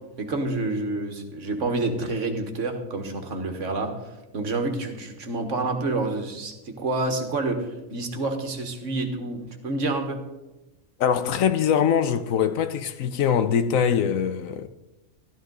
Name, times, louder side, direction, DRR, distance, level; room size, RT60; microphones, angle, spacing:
voice 1, 0.2-10.2, right 2 dB, 65° right, 1.7 m, -28 dB
voice 2, 11.0-14.7, left 8 dB, 80° left, 1.1 m, -23 dB
13.0 x 13.0 x 3.9 m
omnidirectional pair, 1.4 m